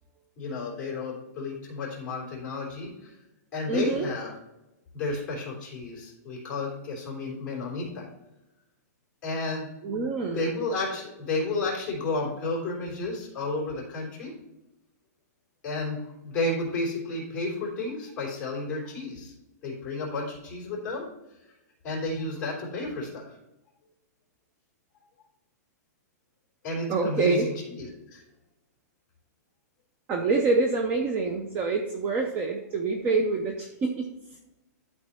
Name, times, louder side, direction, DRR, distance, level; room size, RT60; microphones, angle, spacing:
voice 1, 0.4-3.1 3.5-4.3 4.9-8.0 9.2-9.7 10.3-14.3 15.6-19.3 19.6-21.1 21.8-23.2 26.6-28.2, left 2 dB, 15° left, -4 dB, 3.2 m, -32 dB
voice 2, 3.7-4.1 9.8-10.5 26.9-27.5 30.1-34.1, right 3 dB, 15° right, 4 dB, 0.5 m, -26 dB
12.0 x 4.3 x 4.2 m, 0.96 s
supercardioid pair, 175°, 9 cm